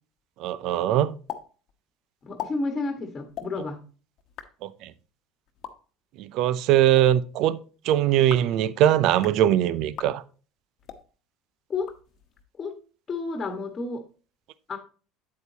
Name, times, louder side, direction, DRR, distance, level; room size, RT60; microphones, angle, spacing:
voice 1, 0.4-1.1 4.6-4.9 6.2-7.6 7.8-10.2, right 12 dB, 60° right, 0.5 m, -21 dB
sound 1, 1.3-1.4 1.7-1.8 2.2-2.5 3.3-3.5 4.2-4.5 5.5-5.7 6.7-7.0 8.1-8.5 9.1-9.4 9.9-10.1 10.8-11.0 11.7-12.4, left 10 dB, 55° left, 1.0 m, -39 dB
voice 2, 2.2-3.8 11.7-11.9 12.6-12.7 13.1-14.0 14.7-14.8, left 3 dB, 30° left, 1.4 m, -30 dB
8.5 x 7.9 x 2.8 m
hypercardioid pair, 75°, 0 cm